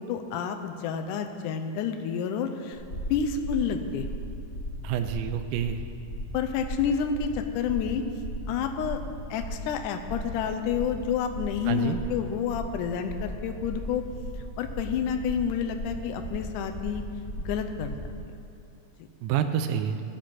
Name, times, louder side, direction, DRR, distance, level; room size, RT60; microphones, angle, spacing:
voice 1, 0.0-2.8 3.1-4.1 6.3-8.0 8.5-9.0 9.3-14.1 14.6-17.0 17.5-17.9, left 7 dB, 80° left, 6 dB, 1.9 m, -29 dB
sound 1, 2.7-18.1, equal, 30° left, 1.0 m, -37 dB
voice 2, 4.8-5.8 11.7-12.0 19.2-20.0, right 9 dB, 85° right, 7 dB, 2.3 m, -28 dB
14.5 x 5.1 x 5.8 m, 2.7 s
omnidirectional pair, 4.2 m